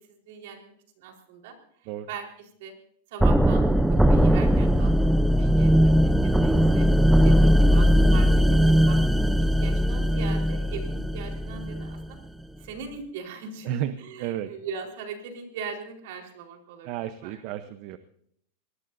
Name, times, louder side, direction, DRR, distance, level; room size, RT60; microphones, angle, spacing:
voice 1, 0.1-1.5 2.1-2.2 2.6-2.7 3.1-3.6 4.1-4.9 5.4-6.9 7.2-9.0 9.4-12.2 12.6-17.4, right 6 dB, 70° right, 2 dB, 4.3 m, -40 dB
sound 1, 3.2-12.1, equal, 5° right, 0.7 m, -20 dB
voice 2, 6.5-6.9 13.6-13.9 14.2-14.5 16.8-18.0, right 12 dB, 55° right, 11 dB, 0.8 m, -33 dB
24.0 x 19.5 x 2.7 m, 0.67 s
supercardioid pair, 135°, 0 cm